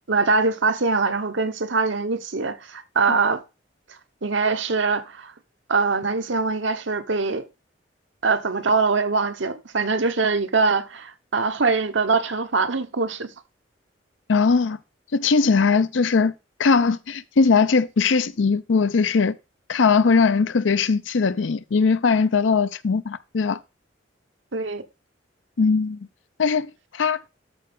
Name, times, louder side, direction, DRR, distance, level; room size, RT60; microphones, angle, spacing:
voice 1, 0.1-3.4 4.2-5.3 5.7-7.4 8.2-13.3 24.5-24.8, right 4 dB, 75° right, 1.0 m, -23 dB
voice 2, 14.3-14.8 15.1-16.3 16.6-19.4 19.7-23.6 25.6-26.0 26.4-27.2, left 5 dB, 80° left, 0.6 m, -20 dB
13.0 x 4.4 x 3.6 m
head